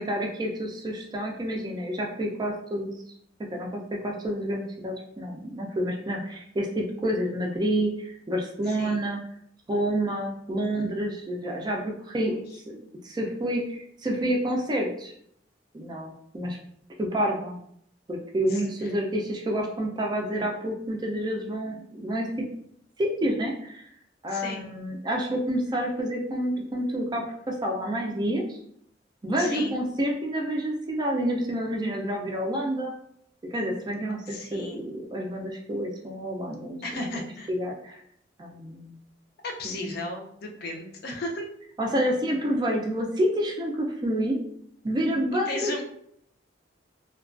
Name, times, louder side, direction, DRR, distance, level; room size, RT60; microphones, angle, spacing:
voice 1, 0.0-3.0 3.5-9.2 9.7-12.4 12.7-15.1 15.7-16.6 17.0-17.6 18.1-22.5 23.0-23.9 24.2-28.6 29.2-32.9 33.5-38.0 38.4-39.0 39.6-40.0 41.8-44.4 44.8-45.8, right 1 dB, 25° right, 1 dB, 0.3 m, -29 dB
voice 2, 8.7-9.0 12.2-12.4 18.5-18.6 24.3-24.7 29.4-29.7 34.3-34.8 36.8-37.5 39.4-41.5 45.5-45.8, left 2 dB, 60° left, 1 dB, 0.4 m, -35 dB
2.3 x 2.2 x 2.4 m, 0.69 s
head